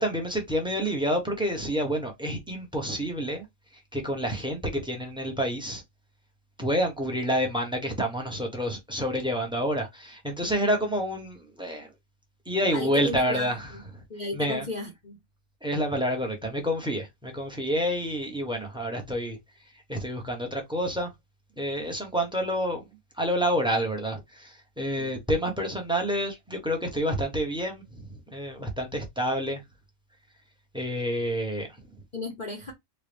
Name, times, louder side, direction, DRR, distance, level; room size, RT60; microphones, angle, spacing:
voice 1, 0.0-3.5 3.7-5.8 6.6-11.9 12.5-14.0 14.3-14.7 15.6-19.4 19.7-21.1 21.6-29.6 30.7-31.8, equal, 5° right, 0.8 m, -28 dB
voice 2, 10.4-10.9 12.7-13.8 14.1-15.2 25.0-25.1 32.1-32.7, left 2 dB, 40° left, 0.8 m, -35 dB
4.0 x 2.3 x 3.3 m
omnidirectional pair, 1.5 m